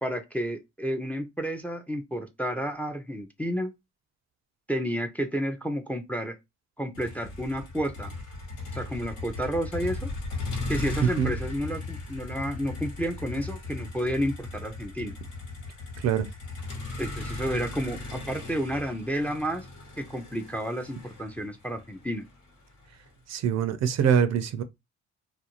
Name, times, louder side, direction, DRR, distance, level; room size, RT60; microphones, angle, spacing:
voice 1, 0.0-3.7 4.7-6.4 6.8-8.1 8.7-10.1 10.7-15.1 17.0-19.7 20.0-22.3, equal, 5° left, 0.4 m, -31 dB
Motor vehicle (road), 6.9-23.1, left 2 dB, 75° left, 1.1 m, -37 dB
voice 2, 16.0-16.3 23.3-24.6, right 7 dB, 60° right, 0.5 m, -24 dB
2.5 x 2.2 x 2.8 m
cardioid pair, 90°, 30 cm